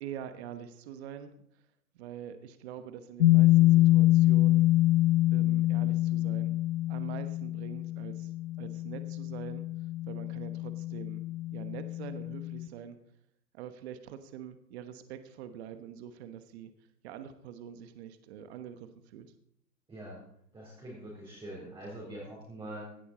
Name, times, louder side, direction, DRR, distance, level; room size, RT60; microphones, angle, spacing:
voice 1, 0.0-1.3 1.9-4.7 5.3-6.5 6.9-8.3 8.6-9.6 10.1-11.2 11.5-13.0 13.5-16.7 17.0-19.3, right 9 dB, 40° right, 10 dB, 1.2 m, -44 dB
sound 1, 3.2-12.7, left 16 dB, 60° left, 0.9 m, -26 dB
voice 2, 19.9-20.2 20.5-22.9, right 1 dB, 10° right, -6 dB, 4.2 m, -43 dB
17.0 x 11.5 x 4.3 m, 0.71 s
hypercardioid pair, 125°, 49 cm